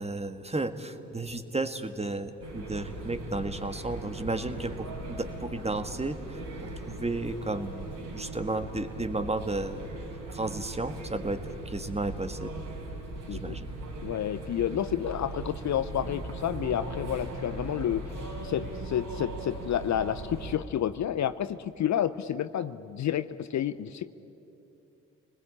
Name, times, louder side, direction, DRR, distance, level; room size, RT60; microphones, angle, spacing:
voice 1, 0.0-9.9 10.3-11.4 11.7-12.5 13.3-13.7, right 2 dB, 15° right, 9 dB, 1.7 m, -33 dB
sound 1, 2.4-20.6, right 2 dB, 55° right, 5.0 m, -39 dB
voice 2, 14.0-18.1 18.4-24.1, left 10 dB, 45° left, 13 dB, 0.7 m, -30 dB
28.0 x 20.5 x 8.7 m, 2.8 s
hypercardioid pair, 50°, 39 cm